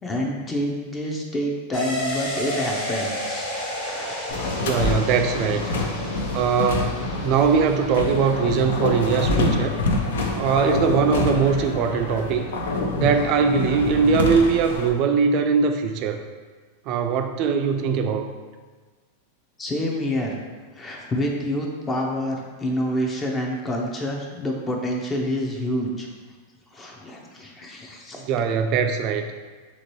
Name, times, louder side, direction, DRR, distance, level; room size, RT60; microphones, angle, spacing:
voice 1, 0.0-3.5 3.9-4.3 19.6-20.4 20.7-26.1 26.7-28.2, equal, 20° left, 0 dB, 0.4 m, -27 dB
sound 1, 1.7-11.1 11.4-11.5, equal, 55° left, 1.3 m, -33 dB
sound 2, 4.3-14.9, left 2 dB, 85° left, 0.4 m, -26 dB
voice 2, 4.5-5.7 6.3-9.8 10.3-12.5 13.0-16.2 16.9-18.3 28.2-29.4, right 5 dB, 45° right, 6 dB, 0.3 m, -21 dB
2.9 x 2.7 x 3.0 m, 1.4 s
supercardioid pair, 130°, 0 cm